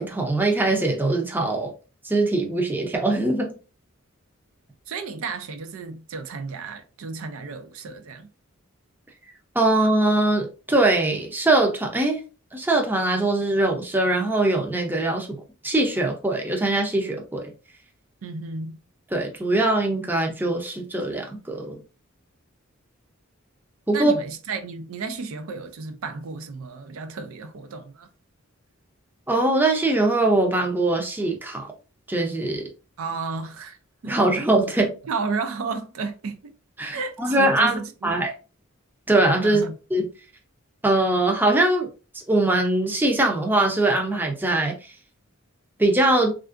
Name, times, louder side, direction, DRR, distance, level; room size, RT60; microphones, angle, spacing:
voice 1, 0.0-1.7 2.0-3.6 9.5-12.2 12.5-17.5 19.1-21.8 23.9-24.1 29.3-31.7 32.1-32.7 34.0-34.9 36.8-38.3 39.1-39.6 39.9-40.1 40.8-41.9 42.1-44.7 45.8-46.3, right 2 dB, 10° right, 0.5 m, -22 dB
voice 2, 4.9-8.3 18.2-18.8 23.9-28.1 33.0-33.8 34.0-34.2 35.0-36.5 36.9-38.1 39.4-39.8, right 4 dB, 75° right, 0.4 m, -32 dB
3.4 x 2.5 x 2.4 m
head